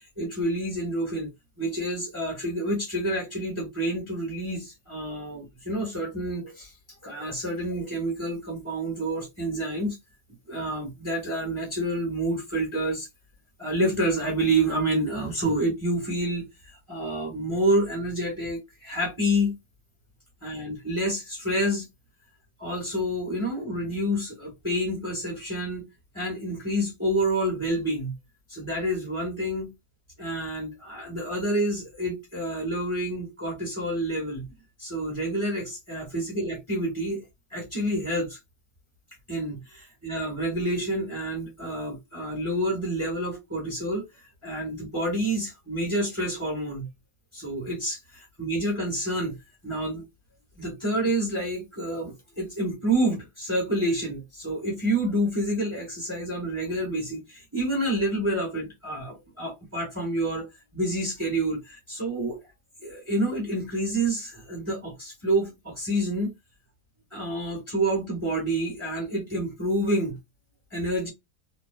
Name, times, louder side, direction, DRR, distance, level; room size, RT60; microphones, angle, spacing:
voice 1, 0.2-1.3 1.6-6.7 7.0-10.0 10.5-13.1 13.6-16.4 16.9-19.5 20.4-21.9 22.6-25.9 26.1-28.1 28.5-29.7 30.2-34.5 34.8-37.2 37.5-38.4 39.3-44.0 44.4-46.9 47.3-49.4 49.6-50.0 50.6-60.4 60.7-62.4 62.8-66.3 67.1-70.2 70.7-71.1, right 1 dB, 10° right, 1.1 m, -28 dB
2.6 x 2.1 x 2.3 m
omnidirectional pair, 1.7 m